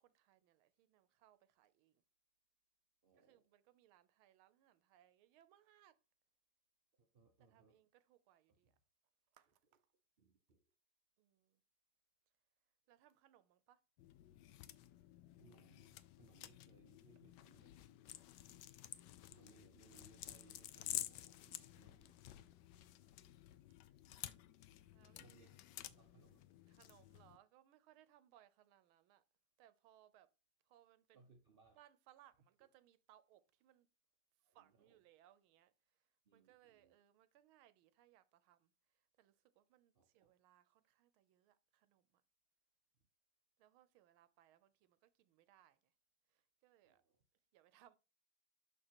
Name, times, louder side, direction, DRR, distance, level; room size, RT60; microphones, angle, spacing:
voice 1, 0.0-2.0 3.1-6.0 7.5-8.7 9.3-9.9 11.2-11.6 12.9-13.8 18.5-19.3 21.4-22.0 22.6-23.2 24.9-25.6 26.7-29.2 29.6-30.3 30.7-31.3 31.7-33.9 34.4-35.7 36.3-42.2 43.6-45.9 46.3-47.0 47.5-48.0, right 12 dB, 85° right, 1.5 m, -70 dB
voice 2, 3.0-3.4 7.0-7.8 10.2-10.6 15.4-18.0 19.3-22.1 23.0-23.1 25.2-26.4 31.1-31.8 34.4-35.0 36.2-36.9 39.9-40.3 46.8-47.2, right 4 dB, 55° right, 0.6 m, -69 dB
sound 1, 14.0-27.4, left 13 dB, 75° left, 1.0 m, -52 dB
6.5 x 6.4 x 2.9 m
omnidirectional pair, 2.2 m